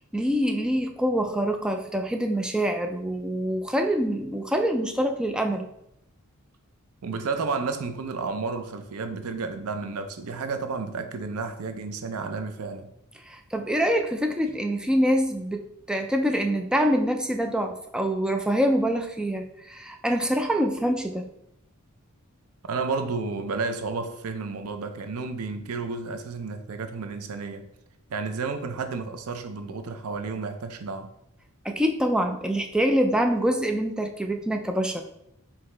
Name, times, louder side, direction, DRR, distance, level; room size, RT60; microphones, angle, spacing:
voice 1, 0.1-5.7 13.3-21.2 31.6-35.0, equal, 5° right, 4 dB, 0.3 m, -25 dB
voice 2, 7.0-12.9 22.6-27.7 28.1-31.1, right 4 dB, 80° right, 7 dB, 0.5 m, -31 dB
4.7 x 2.8 x 3.3 m, 0.77 s
head